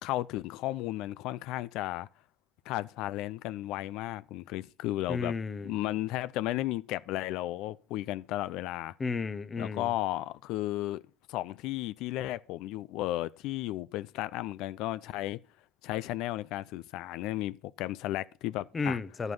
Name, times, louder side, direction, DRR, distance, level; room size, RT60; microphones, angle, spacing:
voice 1, 0.0-2.1 2.7-5.3 5.6-8.9 9.6-11.0 11.3-15.4 15.8-19.0, left 15 dB, 55° left, 0.6 m, -34 dB
voice 2, 5.1-5.7 9.0-9.9 18.7-19.3, left 4 dB, 15° left, 0.8 m, -33 dB
12.0 x 8.1 x 5.5 m
cardioid pair, 155°, 0 cm